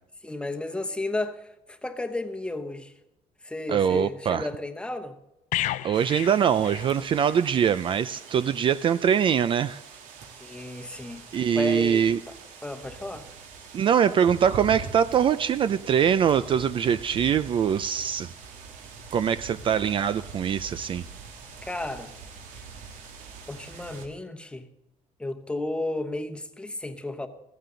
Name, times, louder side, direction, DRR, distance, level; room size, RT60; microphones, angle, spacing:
voice 1, 0.2-2.9 3.4-5.1 10.4-12.1 12.6-13.3 21.6-22.1 23.5-24.7 25.2-27.3, left 2 dB, 5° left, 1.1 m, -33 dB
voice 2, 3.7-4.5 5.8-9.8 11.3-12.2 13.7-18.3 19.1-21.0, right 8 dB, 40° right, 0.4 m, -23 dB
sound 1, 5.5-7.4 7.7-7.9, left 14 dB, 70° left, 0.5 m, -32 dB
sound 2, 5.9-24.1, right 5 dB, 75° right, 3.1 m, -44 dB
15.5 x 15.0 x 3.9 m
cardioid pair, 155°, 14 cm